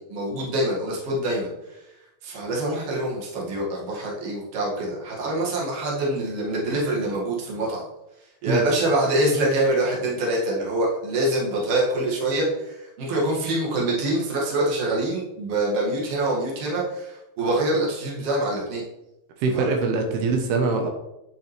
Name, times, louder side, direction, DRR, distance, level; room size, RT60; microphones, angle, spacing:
voice 1, 0.0-1.8 2.2-7.8 8.4-18.8 19.5-19.7, right 1 dB, 45° right, -3 dB, 2.5 m, -25 dB
voice 2, 19.4-20.9, right 4 dB, 85° right, 4 dB, 3.0 m, -23 dB
8.5 x 6.9 x 3.2 m, 0.91 s
omnidirectional pair, 4.4 m